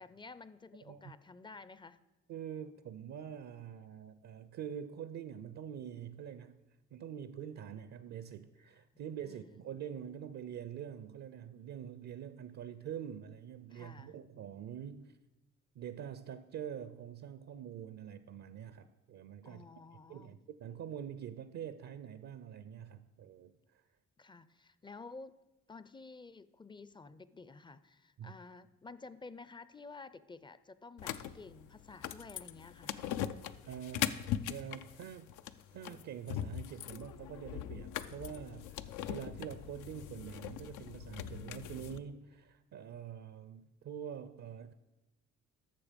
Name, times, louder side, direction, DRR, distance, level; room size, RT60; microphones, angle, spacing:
voice 1, 0.0-2.0 9.2-9.5 13.7-14.2 19.4-20.4 24.2-25.4 25.7-33.0, left 3 dB, 15° left, 0.4 m, -52 dB
voice 2, 2.3-6.6 6.9-15.2 15.8-19.7 20.1-23.8 28.2-28.4 33.6-34.2 34.5-35.3 35.7-44.7, right 9 dB, 65° right, 0.6 m, -45 dB
sound 1, 31.0-42.0, left 11 dB, 90° left, 0.5 m, -41 dB
12.0 x 6.8 x 5.2 m
cardioid pair, 90°, 30 cm